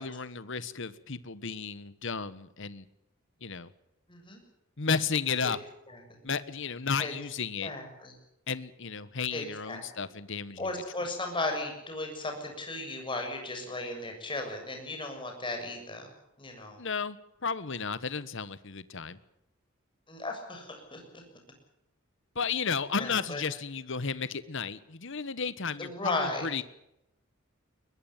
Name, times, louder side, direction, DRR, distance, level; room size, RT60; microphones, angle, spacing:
voice 1, 0.0-2.9 3.4-3.7 4.8-5.6 6.2-7.7 8.5-10.8 16.8-19.2 22.3-26.6, left 5 dB, 60° left, 15 dB, 1.3 m, -33 dB
voice 2, 4.1-4.4 7.0-7.1 7.6-8.1 9.3-9.8 10.6-16.1 16.4-16.8 20.1-21.2 23.0-23.4 25.8-26.5, left 2 dB, 25° left, 4 dB, 7.2 m, -35 dB
22.5 x 21.0 x 7.3 m, 0.83 s
head